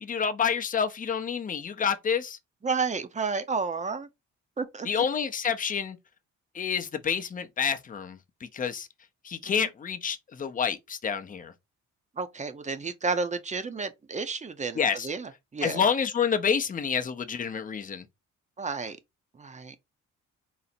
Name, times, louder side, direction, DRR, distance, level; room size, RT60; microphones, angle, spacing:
voice 1, 0.0-2.4 4.8-6.0 6.5-8.9 9.2-11.5 14.8-15.1 15.6-18.0, left 7 dB, 25° left, 0.6 m, -28 dB
voice 2, 2.6-4.1 4.6-5.0 9.6-9.7 12.2-15.8 18.6-19.0 19.4-19.7, right 4 dB, 25° right, 0.7 m, -31 dB
4.0 x 2.0 x 4.2 m
cardioid pair, 90°, 30 cm